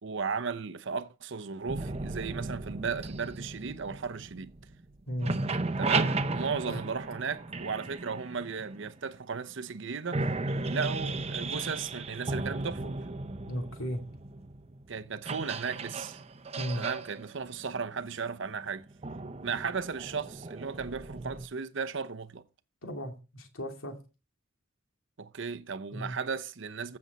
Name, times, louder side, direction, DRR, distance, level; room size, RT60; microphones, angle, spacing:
voice 1, 0.0-4.6 5.8-10.3 10.7-13.0 14.9-16.2 16.8-18.8 19.4-22.4 25.2-27.0, right 5 dB, 65° right, 0.8 m, -35 dB
sound 1, 1.7-4.9 5.1-9.1 9.7-9.8 10.1-21.5, right 3 dB, 30° right, 0.7 m, -35 dB
voice 2, 5.1-5.4 6.5-6.8 13.5-14.0 16.6-16.8 22.8-24.0 25.9-26.1, equal, 85° left, 2.6 m, -35 dB
14.5 x 7.0 x 4.1 m
head